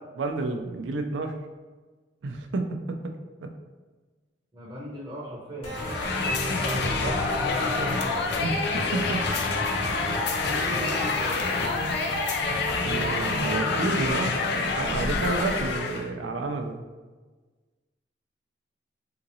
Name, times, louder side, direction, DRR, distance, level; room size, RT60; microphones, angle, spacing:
voice 1, 0.2-1.4 2.2-3.1 3.4-3.5 6.4-7.2 8.4-9.3 11.7-11.8 12.5-16.8, right 3 dB, 80° right, 5 dB, 0.4 m, -31 dB
voice 2, 4.5-5.8 6.8-6.9 7.3-8.0 10.4-11.4, equal, 20° right, -7 dB, 0.7 m, -37 dB
sound 1, 5.6-13.6, equal, 35° left, 1.3 m, -33 dB
sound 2, 5.7-16.1, left 4 dB, 65° left, 0.4 m, -27 dB
3.7 x 2.9 x 2.6 m, 1.3 s
head